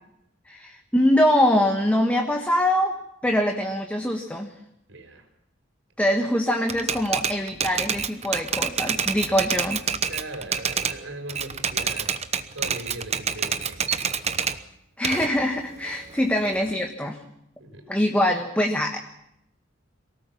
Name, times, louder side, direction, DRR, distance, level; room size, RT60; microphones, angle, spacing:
voice 1, 0.5-2.9 3.2-4.5 6.0-9.8 15.0-17.2 17.9-19.0, left 1 dB, 5° left, 3 dB, 1.4 m, -23 dB
voice 2, 4.9-5.3 10.1-12.2 12.5-14.0 17.6-17.9, right 2 dB, 75° right, 6 dB, 4.9 m, -39 dB
Typewriter, 6.7-11.0 11.3-14.6 15.0-16.7, right 7 dB, 35° right, 1.0 m, -27 dB
23.5 x 18.0 x 7.3 m, 0.79 s
head